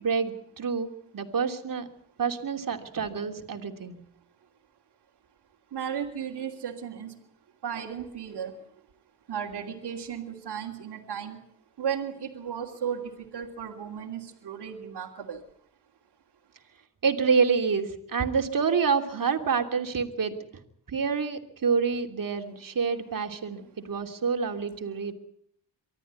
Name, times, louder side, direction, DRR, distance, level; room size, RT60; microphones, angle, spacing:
voice 1, 0.0-1.9 2.2-4.0 17.0-20.4 20.9-25.1, right 5 dB, 50° right, 5 dB, 3.0 m, -27 dB
voice 2, 5.7-7.1 7.6-8.5 9.3-11.4 11.8-15.4, right 8 dB, 65° right, -4 dB, 3.0 m, -35 dB
24.0 x 13.5 x 9.4 m, 0.69 s
cardioid pair, 65°, 42 cm